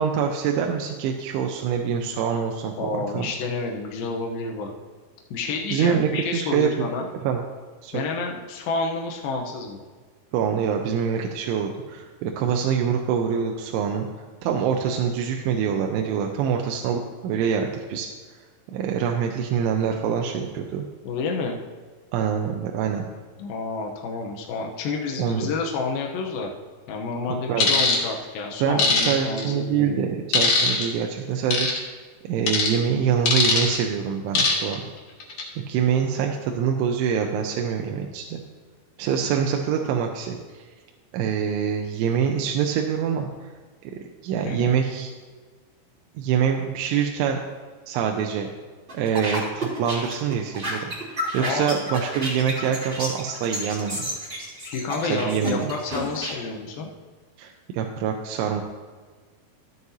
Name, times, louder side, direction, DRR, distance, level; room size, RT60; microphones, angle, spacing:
voice 1, 0.0-3.3 5.7-6.7 7.2-7.4 7.8-8.0 10.3-14.1 14.4-18.1 18.7-20.9 22.1-23.0 25.2-25.5 27.5-27.7 28.6-31.9 32.2-34.8 35.7-38.4 39.0-40.6 41.1-43.3 44.2-45.1 46.2-47.4 47.9-48.5 48.9-54.1 55.0-55.7 57.4-58.6, right 7 dB, 85° right, 2 dB, 3.0 m, -25 dB
voice 2, 2.8-4.7 5.3-7.1 7.9-9.8 21.0-21.6 23.4-26.5 26.9-30.0 44.4-44.7 51.4-51.8 54.6-56.9, left 4 dB, 90° left, 1 dB, 2.0 m, -29 dB
sound 1, 27.6-28.0 28.8-29.4 30.3-30.9 31.5-31.8 32.5-32.7 33.3-33.8 34.3-34.7 35.2-35.4, left 4 dB, 55° left, 2.5 m, -20 dB
sound 2, 48.9-56.3, equal, 15° right, 2.8 m, -31 dB
14.5 x 9.4 x 2.8 m, 1.5 s
omnidirectional pair, 5.4 m